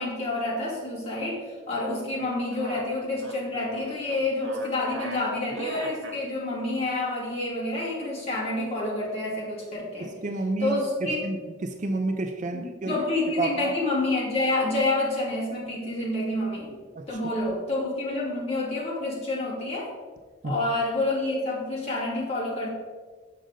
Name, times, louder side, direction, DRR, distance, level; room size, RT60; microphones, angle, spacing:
voice 1, 0.0-10.1 10.6-11.3 12.5-16.7 17.1-19.9 20.4-22.7, left 2 dB, 30° left, -6 dB, 2.1 m, -28 dB
sound 1, 2.1-6.2, right 3 dB, 60° right, 0.9 m, -38 dB
voice 2, 10.0-13.0 13.4-13.7 16.9-17.4 20.4-20.5, right 2 dB, 35° right, 6 dB, 0.4 m, -30 dB
6.5 x 6.4 x 3.8 m, 1.5 s
head